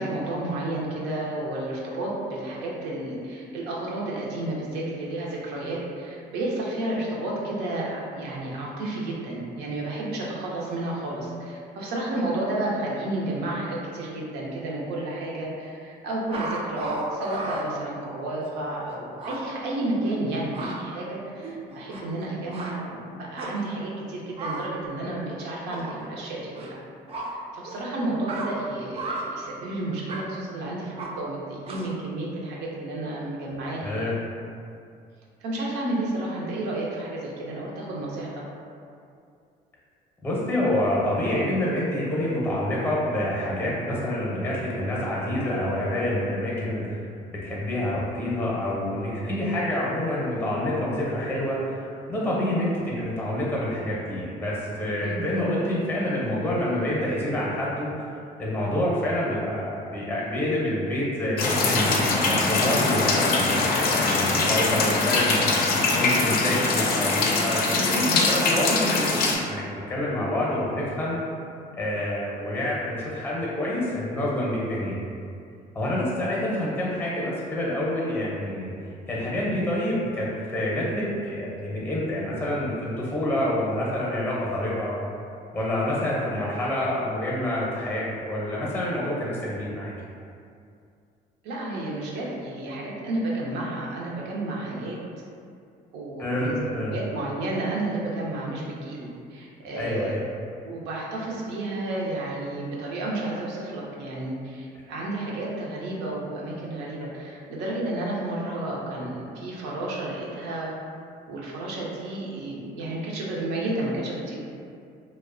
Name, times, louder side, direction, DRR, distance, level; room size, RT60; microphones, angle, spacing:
voice 1, 0.0-26.8 27.3-34.1 35.4-38.3 55.0-55.3 91.4-95.0 95.9-96.6 96.9-100.2 100.6-110.7 111.3-114.4, right 2 dB, 90° right, -4 dB, 0.6 m, -31 dB
sound 1, 16.3-17.6 18.4-18.5 18.9-19.0 19.2-19.4 20.3-20.7 21.4-22.2 22.5-22.7 23.4-23.7 24.4-24.7 25.7-26.0 26.6-26.7 27.1-27.3 27.6-27.8 28.3-28.5 29.0-29.3 30.1-30.2 31.0-31.1 31.7-32.0, right 2 dB, 35° right, 0.4 m, -34 dB
voice 2, 33.8-34.2 40.2-47.1 47.4-65.6 65.9-71.2 71.7-75.0 75.7-78.7 79.1-85.0 85.5-89.9 96.2-96.9 99.8-100.2, left 1 dB, 10° left, -5 dB, 0.6 m, -27 dB
sound 2, 61.4-69.4, left 3 dB, 65° left, 0.4 m, -23 dB
2.6 x 2.0 x 2.4 m, 2.4 s
cardioid pair, 110°, 17 cm